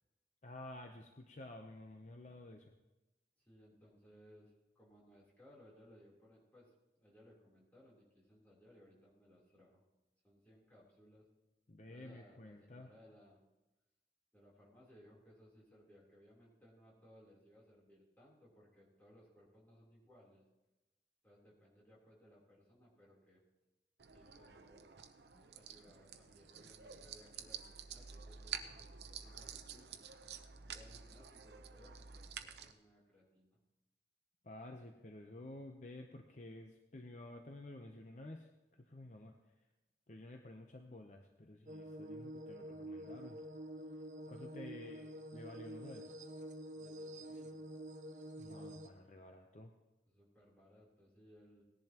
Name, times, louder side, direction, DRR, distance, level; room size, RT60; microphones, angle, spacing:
voice 1, 0.4-2.7 11.7-12.9 25.3-25.4 34.4-39.4 40.1-43.5 44.3-45.1 45.3-46.2 48.4-49.7, left 1 dB, 40° left, 4 dB, 0.7 m, -52 dB
voice 2, 3.4-9.8 10.2-11.3 11.9-13.4 14.3-20.4 21.2-23.4 24.1-24.9 25.2-30.0 30.6-33.6 44.7-45.1 46.7-47.6 50.0-51.6, equal, 10° left, -6 dB, 3.4 m, -64 dB
sound 1, 24.0-32.7, right 7 dB, 75° right, 0.7 m, -50 dB
sound 2, 41.7-48.9, right 1 dB, 45° right, 0.8 m, -48 dB
18.0 x 10.5 x 2.9 m, 1.0 s
head